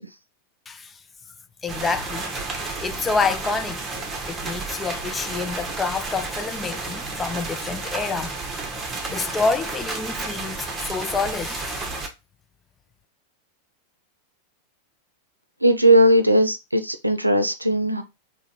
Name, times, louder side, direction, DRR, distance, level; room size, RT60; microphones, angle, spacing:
voice 1, 0.7-1.0 1.6-3.8 4.3-8.4 9.1-12.0, left 4 dB, 15° left, 0.4 m, -28 dB
sound 1, 1.7-12.1, right 3 dB, 15° right, 1.1 m, -31 dB
voice 2, 15.6-18.0, right 1 dB, 85° right, 0.5 m, -18 dB
3.8 x 3.1 x 4.3 m
figure-of-eight pair, 90°, 0 cm